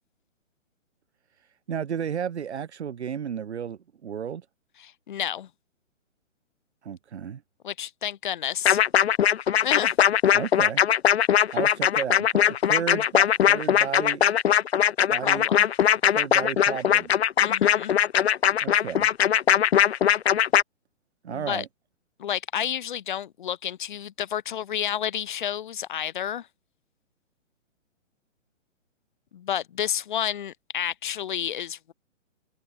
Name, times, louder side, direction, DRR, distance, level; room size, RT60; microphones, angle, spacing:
voice 1, 1.4-4.4 6.8-7.4 10.3-10.8 11.5-14.2 15.1-15.5 16.1-17.1 18.6-19.1 21.2-21.7, right 8 dB, 55° right, 1.7 m, -33 dB
voice 2, 4.8-5.5 7.6-8.8 9.6-9.9 15.2-15.7 17.4-17.9 21.3-21.6 22.2-26.5 29.3-31.9, left 10 dB, 40° left, 3.2 m, -30 dB
sound 1, 8.6-20.6, left 9 dB, 55° left, 0.6 m, -20 dB
hypercardioid pair, 170°, 39 cm